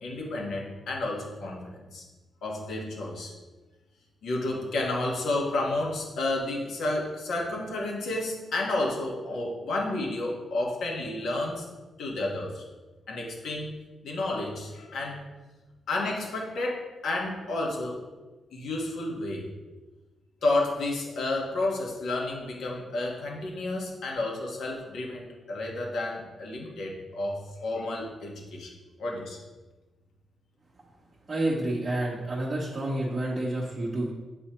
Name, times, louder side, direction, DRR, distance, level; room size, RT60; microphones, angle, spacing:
voice 1, 0.0-2.0 2.4-3.3 4.2-11.7 12.0-12.6 13.1-13.7 14.0-15.2 15.9-18.1 18.5-19.5 20.4-28.7 29.0-29.4, left 2 dB, 75° left, -1 dB, 1.4 m, -31 dB
voice 2, 31.3-34.1, right 1 dB, 25° right, -5 dB, 0.8 m, -29 dB
8.3 x 4.1 x 3.0 m, 1.2 s
wide cardioid pair, 160°, 0 cm